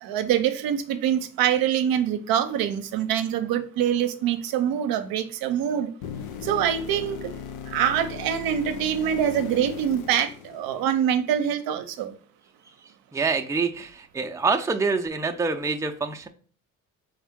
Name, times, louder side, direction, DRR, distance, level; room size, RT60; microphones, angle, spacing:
voice 1, 0.0-5.9 6.4-7.3 7.7-12.2, right 9 dB, 75° right, 0.6 m, -25 dB
sound 1, 6.0-11.1 15.1-15.2, left 7 dB, 85° left, 0.6 m, -38 dB
voice 2, 13.1-16.3, right 4 dB, 10° right, 0.5 m, -26 dB
3.6 x 3.5 x 3.5 m
supercardioid pair, 75°, 36 cm